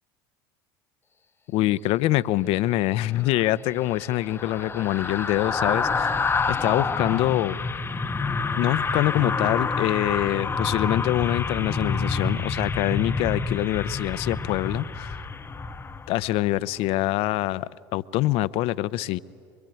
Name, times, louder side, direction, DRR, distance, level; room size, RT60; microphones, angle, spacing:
voice 1, 1.5-6.1 6.5-7.6 8.6-15.2 16.1-19.2, left 16 dB, 60° left, 0.7 m, -25 dB
sound 1, 3.2-16.5 16.8-17.0, left 4 dB, 20° left, 0.9 m, -28 dB
25.5 x 23.5 x 9.3 m
hypercardioid pair, 90°, 11 cm